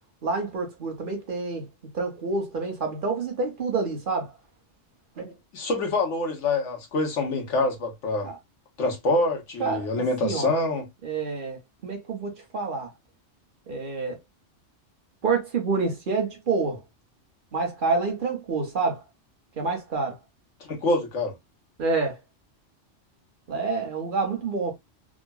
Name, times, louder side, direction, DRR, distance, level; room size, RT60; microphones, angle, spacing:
voice 1, 0.2-1.7 1.9-4.3 5.2-5.4 8.2-8.3 9.6-9.9 10.2-10.5 11.0-12.9 13.7-14.2 15.2-16.8 17.5-19.0 19.6-20.2 21.8-22.2 23.5-24.7, right 4 dB, 45° right, 1.2 m, -28 dB
voice 2, 5.5-8.3 8.8-10.9 20.6-21.3, left 2 dB, 75° left, 1.4 m, -26 dB
3.7 x 2.2 x 2.2 m
omnidirectional pair, 1.3 m